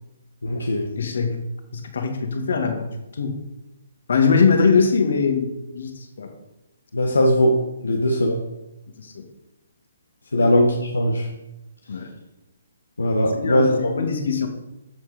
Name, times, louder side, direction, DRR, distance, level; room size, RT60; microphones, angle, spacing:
voice 1, 0.4-0.9 6.9-8.4 10.3-11.3 13.0-13.9, equal, 80° left, 1 dB, 1.6 m, -20 dB
voice 2, 1.0-1.4 1.7-2.9 3.1-3.4 4.1-6.3 7.9-8.0 9.0-9.3 10.3-10.5 11.9-12.1 13.3-14.5, left 5 dB, 65° left, 6 dB, 2.3 m, -22 dB
12.5 x 7.4 x 5.2 m, 0.94 s
figure-of-eight pair, 135°, 0 cm